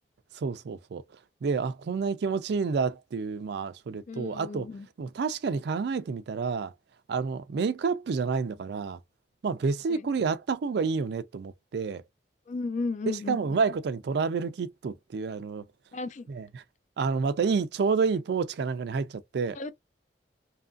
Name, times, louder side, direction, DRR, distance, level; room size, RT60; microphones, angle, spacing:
voice 1, 0.3-1.0 1.4-4.7 5.0-6.7 7.1-9.0 9.4-12.0 13.1-15.6 16.3-16.6 17.0-19.6, right 5 dB, 65° right, 0.4 m, -29 dB
voice 2, 4.1-4.9 9.9-10.1 12.5-13.6 15.9-16.3 19.5-19.7, left 3 dB, 40° left, 0.3 m, -34 dB
2.8 x 2.5 x 2.3 m
head